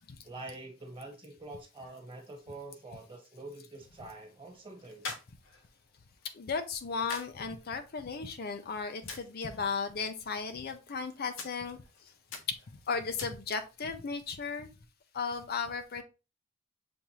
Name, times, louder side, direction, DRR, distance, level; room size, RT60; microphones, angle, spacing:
voice 1, 0.2-5.1, right 2 dB, 25° right, 1.4 m, -46 dB
sound 1, 3.8-13.8, left 4 dB, 75° left, 0.9 m, -49 dB
voice 2, 6.3-11.8 12.9-14.7 15.1-16.0, left 5 dB, 50° left, 0.5 m, -35 dB
7.0 x 2.5 x 2.9 m
head